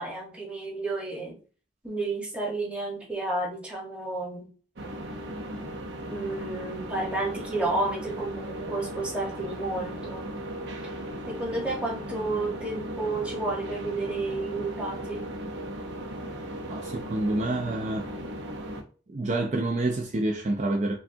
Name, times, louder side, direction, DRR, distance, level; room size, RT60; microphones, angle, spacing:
voice 1, 0.0-1.4 1.8-4.5 6.1-10.3 11.3-15.2, right 2 dB, 5° right, 1.1 m, -31 dB
sound 1, 4.8-18.8, right 1 dB, 75° right, 0.7 m, -37 dB
voice 2, 16.7-18.1 19.1-21.0, right 2 dB, 40° right, 0.4 m, -28 dB
5.2 x 2.3 x 2.7 m
head